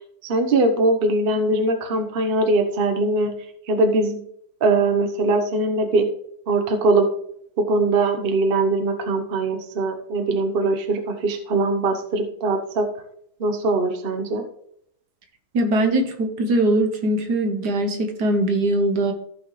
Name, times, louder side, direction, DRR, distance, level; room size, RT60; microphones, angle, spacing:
voice 1, 0.2-3.3 3.7-4.2 4.6-6.1 6.5-7.1 7.6-12.9 13.4-14.4, right 2 dB, 40° right, 5 dB, 1.0 m, -21 dB
voice 2, 15.5-19.1, right 1 dB, 65° right, 5 dB, 1.8 m, -21 dB
14.5 x 6.0 x 3.2 m, 0.69 s
omnidirectional pair, 1.9 m